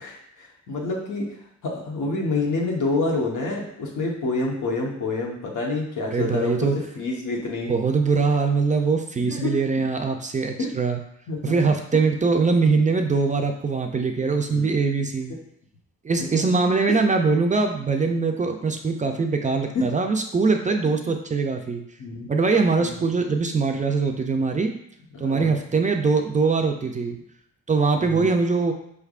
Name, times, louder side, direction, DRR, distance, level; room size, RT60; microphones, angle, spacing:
voice 1, 0.0-1.3 1.6-7.7 9.3-9.6 10.6-10.7 11.3-11.5 14.5-14.7 15.0-15.1 16.2-16.6 16.9-17.0 19.7-19.9 20.7-20.8 22.0-22.3 22.8-23.0 25.1-25.6 28.0-28.3, left 3 dB, 85° left, -2 dB, 1.1 m, -28 dB
voice 2, 6.1-6.8 7.7-11.0 11.4-15.3 16.0-21.8 22.3-24.7 25.2-27.2 27.7-28.7, right 4 dB, 25° right, 4 dB, 0.4 m, -22 dB
4.9 x 3.4 x 2.4 m, 0.76 s
wide cardioid pair, 130°, 30 cm